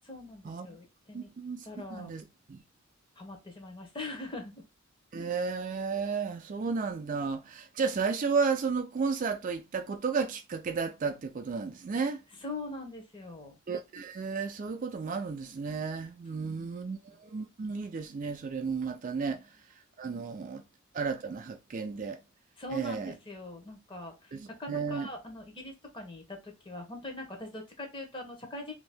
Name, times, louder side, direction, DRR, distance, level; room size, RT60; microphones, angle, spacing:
voice 1, 0.1-1.3 1.6-2.1 3.2-4.6 12.4-13.6 16.4-17.0 22.6-28.7, left 2 dB, 25° left, 0.8 m, -42 dB
voice 2, 1.1-2.2 2.5-2.6 5.1-12.2 13.7-19.4 20.0-20.6 20.9-22.2 22.7-23.1 24.3-25.1, right 5 dB, 35° right, 0.3 m, -33 dB
2.9 x 2.7 x 3.4 m
head